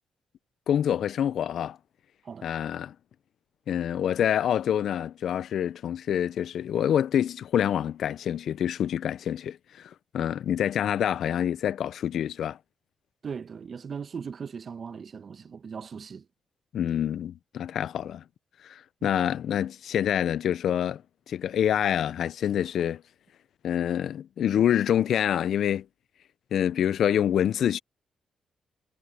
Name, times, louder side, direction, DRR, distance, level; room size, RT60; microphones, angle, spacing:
voice 1, 0.7-1.8 2.4-2.9 3.7-12.6 16.7-18.2 18.6-21.0 21.3-23.0 23.6-25.8 26.5-27.8, left 9 dB, 70° left, 0.7 m, -26 dB
voice 2, 13.2-16.3 19.0-19.1, right 6 dB, 55° right, 1.3 m, -38 dB
supercardioid pair, 55°, 0 cm